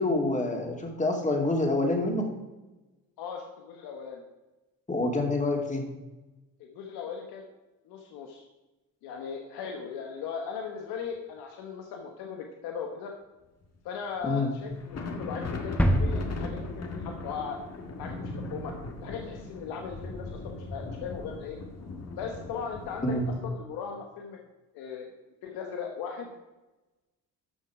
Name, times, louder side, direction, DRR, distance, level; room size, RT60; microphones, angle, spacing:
voice 1, 0.0-2.3 4.9-5.9 14.2-14.5 23.0-23.3, left 2 dB, 20° left, 1 dB, 2.7 m, -27 dB
voice 2, 3.2-4.2 6.6-7.5 7.8-8.4 9.0-13.1 13.8-16.6 17.0-17.6 18.0-18.7 19.0-21.6 22.2-23.1 23.4-24.4 24.7-25.1 25.4-26.3, left 6 dB, 85° left, 2 dB, 1.2 m, -38 dB
sound 1, 13.6-13.8 14.2-14.4 14.6-23.4, left 3 dB, 45° left, 2.0 m, -39 dB
sound 2, 15.8-17.6 17.9-18.0, equal, 5° left, 1.3 m, -28 dB
12.5 x 6.2 x 4.8 m, 1.1 s
supercardioid pair, 70°, 36 cm